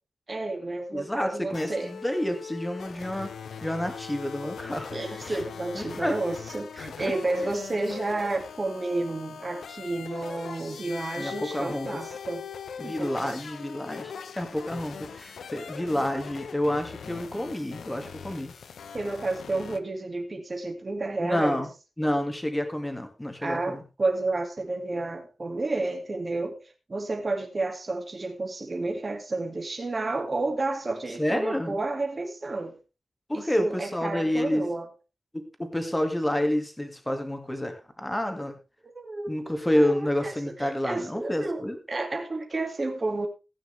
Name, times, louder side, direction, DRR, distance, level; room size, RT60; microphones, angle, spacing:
voice 1, 0.3-1.9 4.9-12.5 12.8-13.3 18.9-21.6 23.4-26.6 26.9-32.8 33.3-34.9 38.8-43.3, right 2 dB, 25° right, 3 dB, 2.3 m, -31 dB
voice 2, 0.9-3.3 3.6-5.0 5.2-5.4 5.7-6.2 6.8-7.5 11.2-12.0 12.8-18.5 21.2-21.7 22.0-23.8 31.2-31.8 33.3-34.6 35.3-38.6 39.3-41.8, left 1 dB, 10° left, 6 dB, 2.1 m, -29 dB
sound 1, 1.5-19.8, left 6 dB, 75° left, 1.0 m, -41 dB
16.5 x 9.1 x 3.4 m, 0.30 s
wide cardioid pair, 175°, 0 cm